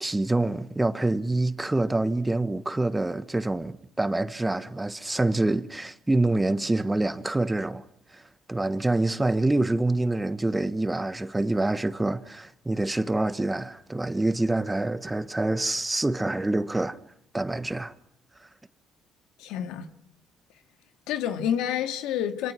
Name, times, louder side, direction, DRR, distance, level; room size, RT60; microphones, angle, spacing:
voice 1, 0.0-7.8 8.1-8.2 8.5-17.0 17.3-17.9, right 2 dB, 15° right, 1.4 m, -26 dB
voice 2, 19.4-19.9 21.1-22.5, left 9 dB, 85° left, 1.9 m, -28 dB
26.5 x 24.0 x 6.2 m
cardioid pair, 85°, 0 cm